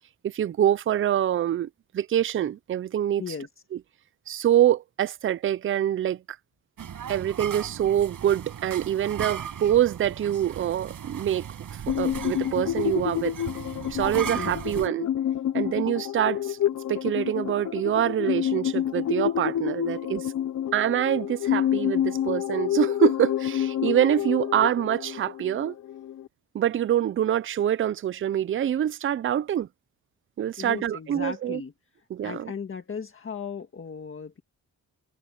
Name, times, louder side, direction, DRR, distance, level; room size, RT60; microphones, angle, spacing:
voice 1, 0.2-3.2 4.3-6.2 7.1-13.3 13.9-15.1 15.5-16.6 16.9-20.3 20.7-25.8 26.5-29.7 30.4-31.6 32.1-32.5, right 11 dB, 40° right, 0.4 m, -25 dB
voice 2, 3.2-3.5 14.4-14.7 30.6-31.7 32.2-34.4, left 6 dB, 40° left, 1.7 m, -36 dB
sound 1, 6.8-14.9, right 8 dB, 70° right, 5.2 m, -37 dB
sound 2, 11.9-26.3, left 10 dB, 55° left, 0.7 m, -28 dB
open air
wide cardioid pair, 145°, 34 cm